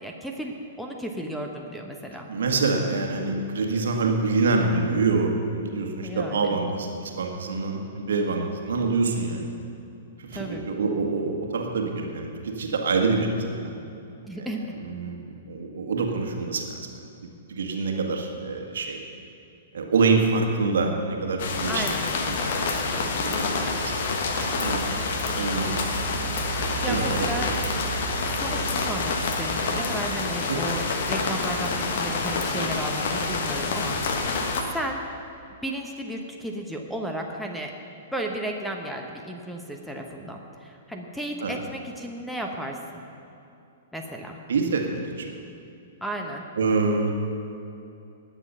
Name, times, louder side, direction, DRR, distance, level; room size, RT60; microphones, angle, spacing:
voice 1, 0.0-2.3 6.0-6.6 10.3-10.6 14.2-14.7 21.7-22.1 26.8-27.5 28.4-34.4 34.7-35.0 35.6-37.7 38.1-43.0 43.9-44.4 46.0-46.5, right 1 dB, ahead, 2 dB, 1.1 m, -34 dB
voice 2, 2.3-9.5 10.2-13.7 14.8-16.7 17.5-19.0 19.7-21.8 22.3-22.7 23.0-23.9 24.4-24.8 25.3-25.8 26.7-27.5 30.5-30.7 41.4-41.5 44.5-45.4 46.6-47.1, right 3 dB, 65° right, 2 dB, 1.7 m, -26 dB
sound 1, 21.4-34.6, left 3 dB, 55° left, 1.3 m, -27 dB
19.5 x 7.3 x 5.6 m, 2.7 s
figure-of-eight pair, 110°, 0 cm